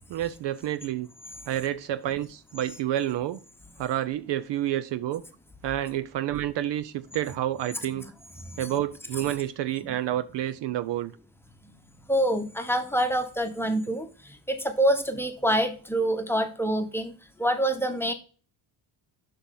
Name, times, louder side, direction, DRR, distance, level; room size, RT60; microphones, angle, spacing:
voice 1, 0.1-1.1 1.5-3.4 3.8-5.2 5.6-8.0 8.6-11.1, right 12 dB, 60° right, 0.6 m, -29 dB
voice 2, 12.1-17.1 17.4-18.1, right 1 dB, 5° left, 1.1 m, -26 dB
7.0 x 5.5 x 3.8 m
cardioid pair, 85°, 49 cm